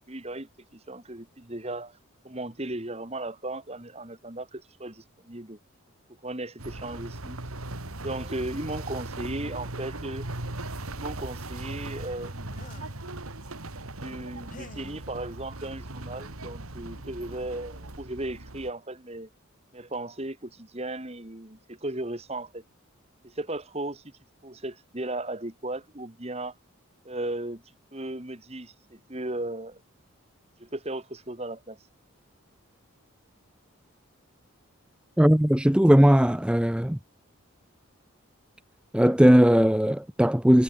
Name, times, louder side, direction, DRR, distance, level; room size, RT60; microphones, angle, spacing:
voice 1, 0.0-2.0 2.2-5.6 6.2-7.4 8.0-10.3 10.9-12.6 14.0-19.3 19.7-22.6 23.2-24.0 24.4-26.5 27.0-29.8 30.6-31.8, right 1 dB, 30° right, 2.0 m, -36 dB
sound 1, 6.6-18.7, right 2 dB, 90° right, 3.0 m, -38 dB
sound 2, 12.5-13.1 14.5-15.0 16.4-16.5 16.9-17.1, left 2 dB, 40° left, 3.2 m, -49 dB
voice 2, 35.2-37.0 38.9-40.6, equal, 5° right, 0.6 m, -19 dB
head